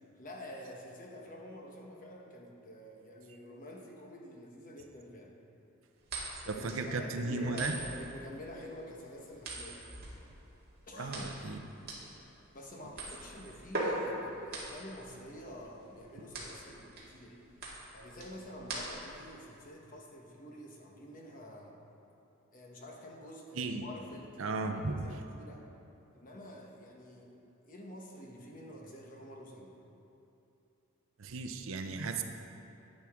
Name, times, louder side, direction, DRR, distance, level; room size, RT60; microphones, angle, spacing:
voice 1, 0.2-5.4 6.4-9.8 10.9-11.3 12.5-17.4 17.9-21.8 22.5-25.7 26.1-29.8, left 1 dB, 40° left, 0 dB, 1.1 m, -48 dB
sound 1, 6.0-19.2, right 2 dB, 45° right, 2.0 m, -42 dB
voice 2, 6.5-7.8 11.0-11.6 23.5-23.8 24.4-25.2 31.2-32.2, right 3 dB, 65° right, 5 dB, 0.6 m, -35 dB
10.5 x 9.3 x 3.6 m, 2.8 s
head